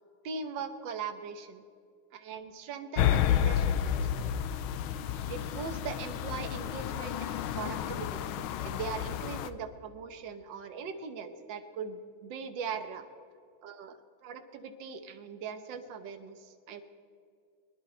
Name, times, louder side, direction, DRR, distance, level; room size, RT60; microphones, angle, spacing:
voice 1, 0.2-1.6 2.1-4.3 5.0-13.1 13.6-16.8, right 6 dB, 65° right, 8 dB, 1.6 m, -40 dB
sound 1, 3.0-9.5, left 10 dB, 80° left, 1.4 m, -31 dB
23.5 x 11.0 x 4.4 m, 2.3 s
omnidirectional pair, 2.3 m